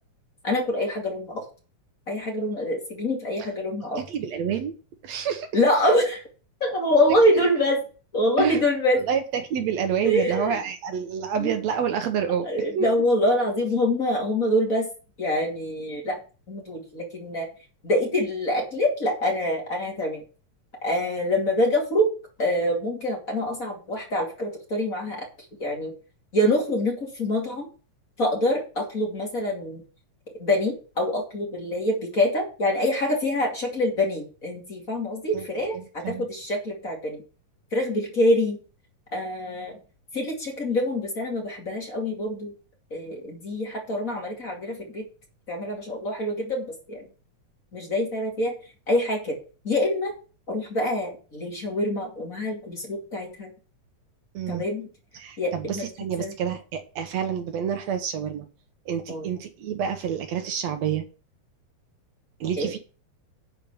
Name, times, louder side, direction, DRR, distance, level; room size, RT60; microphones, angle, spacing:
voice 1, 0.4-1.4 2.1-4.0 5.5-6.2 6.6-7.8 8.1-9.0 10.0-10.6 11.4-11.5 12.4-14.9 15.2-16.2 16.5-17.5 17.8-20.2 20.8-22.1 22.4-25.2 25.6-25.9 26.3-27.7 28.2-29.8 30.4-37.2 37.7-38.6 39.1-39.8 40.1-42.5 42.9-45.0 45.5-47.1 47.7-48.5 48.9-49.3 49.6-50.1 50.5-53.5 54.5-54.9 55.4-55.8 56.2-56.3 59.1-59.3 62.6-62.7, left 1 dB, 30° left, 0 dB, 2.6 m, -25 dB
voice 2, 4.0-4.7 5.0-5.5 7.3-7.4 8.4-8.6 9.1-12.5 12.8-12.9 35.3-36.3 54.3-54.7 55.1-58.5 58.9-61.1 62.4-62.8, right 8 dB, 70° right, 7 dB, 2.1 m, -28 dB
10.5 x 4.6 x 7.1 m, 0.36 s
omnidirectional pair, 3.3 m